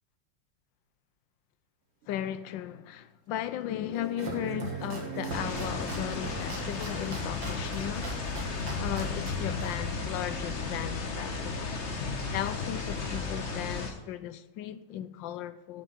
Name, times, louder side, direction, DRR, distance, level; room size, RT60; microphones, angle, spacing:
sound 1, 2.0-2.1 2.7-2.8 4.2-6.7 8.4-8.5, right 6 dB, 40° right, 1.3 m, -40 dB
voice 1, 2.1-8.1 8.4-15.8, left 11 dB, 85° left, 1.3 m, -36 dB
Domestic sounds home sounds, 3.8-10.8, right 2 dB, 80° right, 2.6 m, -43 dB
sound 2, 5.3-13.9, left 4 dB, 40° left, 1.4 m, -34 dB
9.3 x 8.9 x 5.9 m
omnidirectional pair, 2.0 m